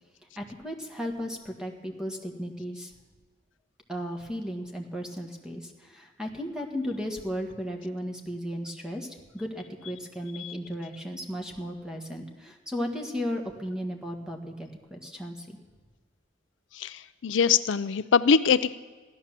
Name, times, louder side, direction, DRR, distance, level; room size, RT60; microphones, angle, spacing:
voice 1, 0.4-2.9 3.9-15.6, equal, 5° right, 2 dB, 1.6 m, -35 dB
voice 2, 16.8-18.8, left 6 dB, 75° left, 15 dB, 0.4 m, -23 dB
15.5 x 11.5 x 7.4 m, 1.4 s
head